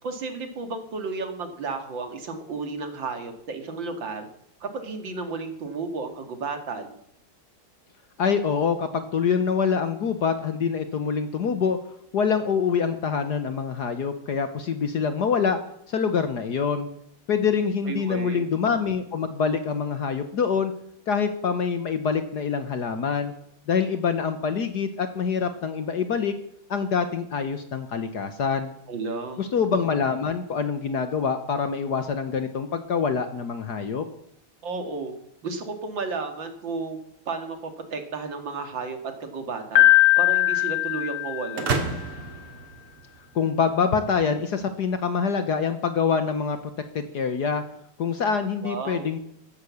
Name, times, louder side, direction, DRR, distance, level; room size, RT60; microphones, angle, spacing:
voice 1, 0.0-4.3 4.6-6.9 17.9-18.4 28.9-29.5 34.6-35.2 35.4-37.0 37.3-39.9 40.2-41.7 48.6-49.1, right 4 dB, 60° right, 6 dB, 2.6 m, -33 dB
voice 2, 8.2-11.8 12.1-15.6 15.9-16.9 17.3-20.7 21.1-23.3 23.7-26.3 26.7-28.7 29.4-34.1 43.3-46.6 46.9-47.6 48.0-49.2, left 6 dB, 55° left, 9 dB, 1.4 m, -25 dB
Piano, 39.8-41.8, left 16 dB, 80° left, 2.0 m, -20 dB
sound 1, 41.6-43.5, right 4 dB, 80° right, 2.7 m, -30 dB
14.5 x 11.5 x 7.1 m, 0.72 s
omnidirectional pair, 2.4 m